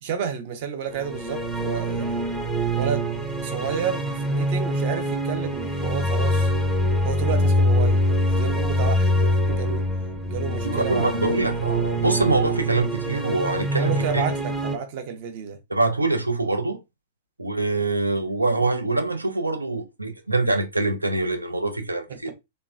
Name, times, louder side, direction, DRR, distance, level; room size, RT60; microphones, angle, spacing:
voice 1, 0.0-2.3 2.8-3.1 3.4-6.5 7.0-9.8 10.3-11.2 13.8-15.6 22.1-22.3, right 7 dB, 50° right, 0.7 m, -31 dB
sound 1, 0.9-14.8, equal, ahead, 0.5 m, -24 dB
voice 2, 10.6-14.2 15.7-16.8 17.4-22.3, right 2 dB, 90° right, 0.5 m, -24 dB
3.2 x 2.1 x 2.4 m
figure-of-eight pair, 105°, 0 cm